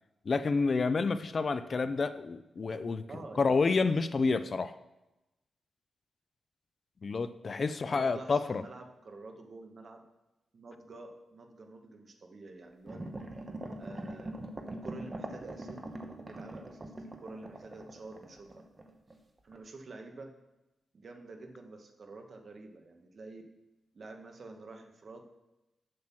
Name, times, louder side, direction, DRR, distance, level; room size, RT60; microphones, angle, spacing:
voice 1, 0.3-3.0 3.4-4.7 7.0-8.6, left 4 dB, 40° left, 0.4 m, -29 dB
voice 2, 3.1-3.6 7.7-10.0 10.5-13.0 13.8-14.3 14.7-15.8 16.2-18.6 19.4-20.3 20.9-23.4 23.9-25.2, right 3 dB, 45° right, 1.2 m, -48 dB
sound 1, 12.9-19.2 19.5-19.6, right 1 dB, 25° right, 1.0 m, -43 dB
7.7 x 7.5 x 6.0 m
wide cardioid pair, 130°, 0 cm